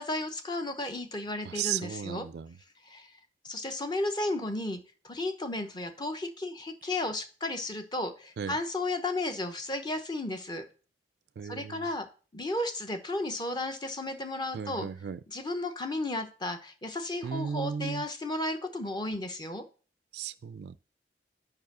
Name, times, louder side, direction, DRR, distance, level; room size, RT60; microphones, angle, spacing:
voice 1, 0.0-2.3 2.8-3.2 3.4-4.8 5.0-10.7 11.4-12.1 12.3-14.9 15.3-19.6, left 2 dB, 25° left, 0.8 m, -33 dB
voice 2, 1.4-2.6 8.4-8.6 11.4-11.9 14.5-15.2 17.2-18.0 20.1-20.8, right 7 dB, 65° right, 0.3 m, -35 dB
5.3 x 4.7 x 6.1 m
head